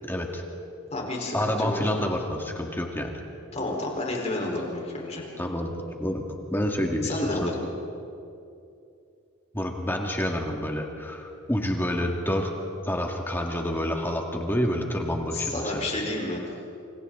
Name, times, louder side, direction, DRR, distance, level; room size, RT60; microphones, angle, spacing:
voice 1, 0.0-0.4 1.3-3.1 5.4-5.7 6.0-6.2 6.5-7.5 9.5-12.5 12.8-15.9, left 1 dB, 10° left, 1 dB, 2.2 m, -28 dB
voice 2, 0.9-2.0 3.5-5.2 7.0-7.7 15.3-16.4, left 2 dB, 35° left, -1 dB, 4.6 m, -30 dB
28.0 x 27.0 x 4.0 m, 2.6 s
head